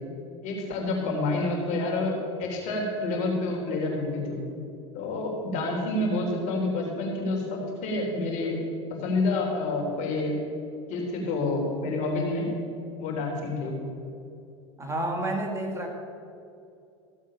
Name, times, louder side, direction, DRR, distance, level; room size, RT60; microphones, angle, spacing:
voice 1, 0.4-4.4 4.9-8.6 9.0-10.3 10.9-12.4 13.0-13.7, left 2 dB, 50° left, 0 dB, 3.6 m, -28 dB
voice 2, 14.8-15.9, right 1 dB, 20° right, 2 dB, 1.8 m, -30 dB
15.5 x 7.4 x 5.7 m, 2.6 s
supercardioid pair, 105°, 15 cm